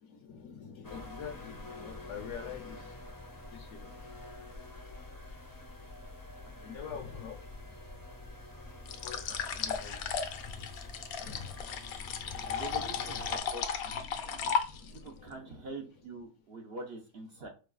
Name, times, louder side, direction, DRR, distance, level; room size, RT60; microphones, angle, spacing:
voice 1, 0.0-3.1 3.5-3.9 6.5-7.4 7.7-7.8 9.0-10.0 10.3-10.7 11.2-11.6 12.2-13.5 13.8-15.9, left 7 dB, 60° left, 4 dB, 1.1 m, -47 dB
sound 1, 0.8-13.4, left 2 dB, 20° left, 0.7 m, -47 dB
sound 2, 8.9-15.1, left 6 dB, 85° left, 1.1 m, -35 dB
voice 2, 12.4-13.9 15.0-17.5, right 2 dB, 55° right, 2 dB, 0.8 m, -44 dB
4.6 x 2.3 x 2.3 m, 0.34 s
omnidirectional pair, 1.5 m